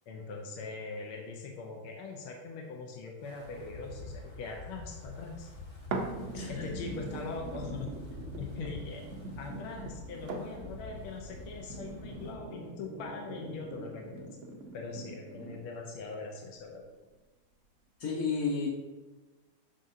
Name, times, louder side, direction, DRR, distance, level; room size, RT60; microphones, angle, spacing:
voice 1, 0.1-5.5 6.5-7.9 8.5-9.0 9.4-14.3 14.7-16.9, left 4 dB, 85° left, 1 dB, 1.7 m, -41 dB
Wind, 3.2-12.4, left 2 dB, 35° left, 0.4 m, -46 dB
sound 1, 5.9-15.9 16.5-16.6, right 2 dB, 65° right, 0.7 m, -42 dB
voice 2, 6.3-6.7 9.2-9.3 18.0-18.7, left 4 dB, 55° left, -5 dB, 1.2 m, -32 dB
7.4 x 6.5 x 2.7 m, 1.2 s
omnidirectional pair, 2.3 m